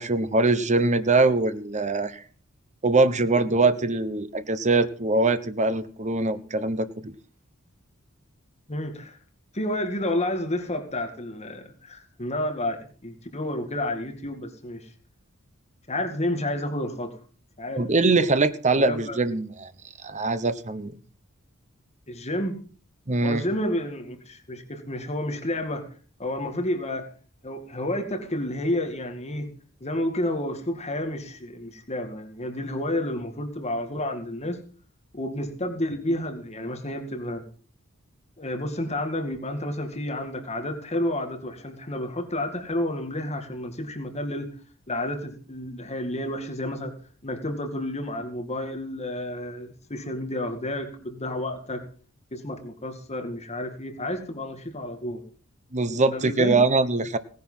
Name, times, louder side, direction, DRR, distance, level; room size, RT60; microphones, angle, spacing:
voice 1, 0.0-2.2 2.8-7.1 17.8-19.7 20.0-21.0 23.1-23.4 55.7-57.2, right 3 dB, 35° right, 12 dB, 1.1 m, -22 dB
voice 2, 8.7-9.2 9.5-14.9 15.9-17.2 17.6-17.9 18.1-18.2 18.8-19.2 22.1-22.6 23.2-25.9 26.2-27.1 27.4-29.5 29.8-34.6 35.1-37.4 38.4-44.6 44.9-46.9 47.2-51.8 52.3-55.2 56.1-56.6, left 1 dB, 30° left, 5 dB, 2.2 m, -30 dB
18.0 x 10.5 x 5.7 m, 0.42 s
head